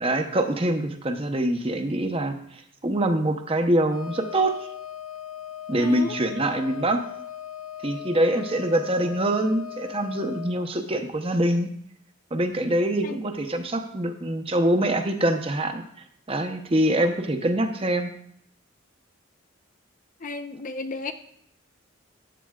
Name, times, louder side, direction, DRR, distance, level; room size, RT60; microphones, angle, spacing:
voice 1, 0.0-4.6 5.7-7.0 7.8-11.7 12.3-15.8 16.3-18.1, right 1 dB, 25° right, 7 dB, 0.7 m, -24 dB
Wind instrument woodwind instrument, 3.9-10.6, left 10 dB, 85° left, 1.1 m, -39 dB
voice 2, 5.8-6.2 13.0-13.2 20.2-21.1, left 3 dB, 40° left, 8 dB, 0.5 m, -33 dB
13.5 x 9.1 x 2.4 m, 0.70 s
head